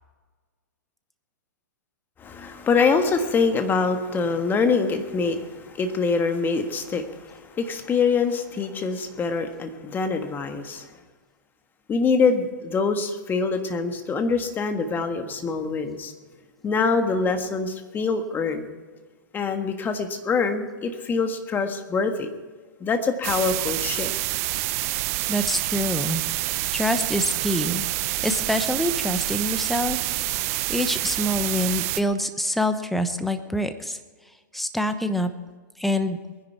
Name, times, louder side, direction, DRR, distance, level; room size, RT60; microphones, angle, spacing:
voice 1, 2.2-10.9 11.9-16.1 16.6-18.7 19.3-22.3 22.8-24.1, left 4 dB, 20° left, 7 dB, 1.6 m, -24 dB
sound 1, 23.2-32.0, right 17 dB, 45° right, 0.7 m, -27 dB
voice 2, 25.3-26.2 26.7-27.8 28.2-30.1 30.5-34.0 34.5-35.3 35.8-36.2, left 1 dB, ahead, 9 dB, 0.9 m, -26 dB
22.0 x 10.5 x 4.6 m, 1.4 s
hypercardioid pair, 130°, 11 cm